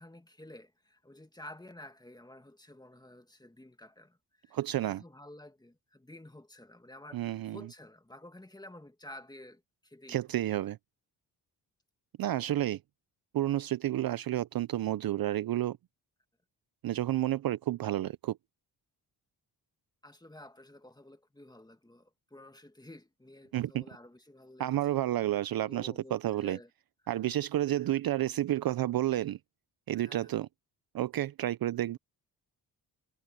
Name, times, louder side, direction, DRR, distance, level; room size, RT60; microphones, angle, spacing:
voice 1, 0.0-10.2 20.0-25.0 25.6-26.7 27.8-28.0 29.9-30.4, left 1 dB, 10° left, 2.1 m, -52 dB
voice 2, 4.5-5.0 7.1-7.7 10.1-10.8 12.2-12.8 13.3-15.8 16.8-18.4 23.5-23.8 24.6-26.6 27.1-29.4 29.9-30.5 30.9-32.0, right 13 dB, 60° right, 0.6 m, -30 dB
cardioid pair, 85°, 42 cm